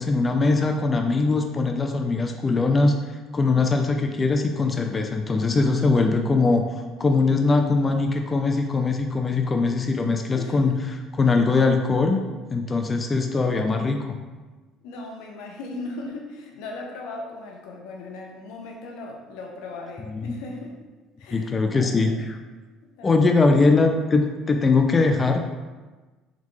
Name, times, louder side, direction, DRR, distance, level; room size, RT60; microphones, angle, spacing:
voice 1, 0.0-3.0 3.3-10.7 11.2-12.2 12.5-14.2 20.1-20.4 21.3-22.4 23.0-25.4, left 3 dB, 25° left, 4 dB, 0.4 m, -21 dB
voice 2, 10.3-10.8 14.8-20.8 21.2-22.2 22.8-23.6, left 2 dB, 80° left, 1 dB, 0.7 m, -38 dB
3.7 x 3.5 x 3.2 m, 1.3 s
supercardioid pair, 90°, 0 cm